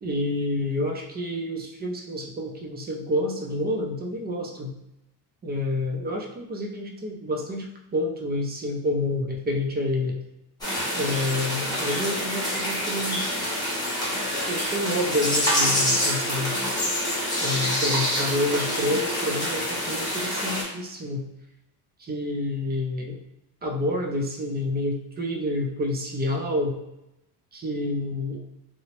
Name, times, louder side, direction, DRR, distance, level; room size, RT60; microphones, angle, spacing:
voice 1, 0.0-4.7 5.4-10.2 10.9-13.3 14.5-16.6 17.4-21.3 22.0-23.2 23.6-26.8 27.5-28.4, left 1 dB, 25° right, 1 dB, 0.3 m, -28 dB
sound 1, 10.6-20.6, equal, 10° left, 0.8 m, -26 dB
2.8 x 2.0 x 2.9 m, 0.89 s
cardioid pair, 135°, 42 cm